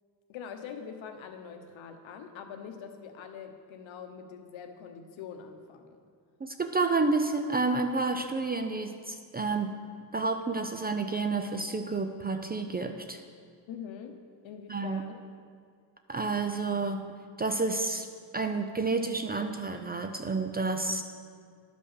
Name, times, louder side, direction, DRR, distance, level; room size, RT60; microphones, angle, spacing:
voice 1, 0.3-6.0 13.7-14.2 14.4-15.2, left 7 dB, 85° left, 6 dB, 1.1 m, -44 dB
voice 2, 6.4-9.8 10.1-13.2 14.7-15.0 16.1-17.0 17.4-18.1 18.3-21.0, right 3 dB, 25° right, 6 dB, 0.3 m, -30 dB
11.5 x 5.4 x 6.6 m, 2.1 s
wide cardioid pair, 165°, 45 cm